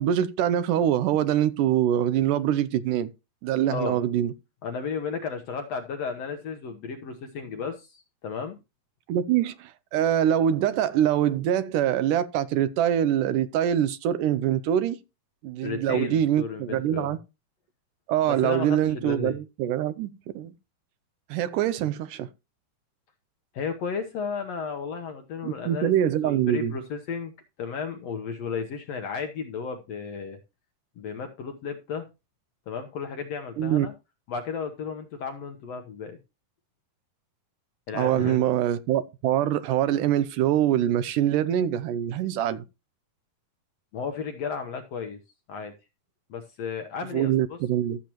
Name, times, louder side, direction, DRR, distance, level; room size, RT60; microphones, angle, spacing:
voice 1, 0.0-3.1 3.4-4.3 9.1-15.0 15.4-17.2 18.1-20.5 21.3-22.3 25.4-26.7 33.6-33.9 37.9-42.6 47.1-48.0, right 11 dB, 80° right, 2.1 m, -24 dB
voice 2, 4.6-8.6 15.6-17.1 18.3-19.4 23.5-27.3 27.6-30.4 31.0-32.1 32.7-33.9 34.3-36.2 37.9-38.4 43.9-45.2 45.5-45.7 46.3-47.6, left 5 dB, 65° left, 1.7 m, -33 dB
13.5 x 7.5 x 3.0 m
omnidirectional pair, 3.9 m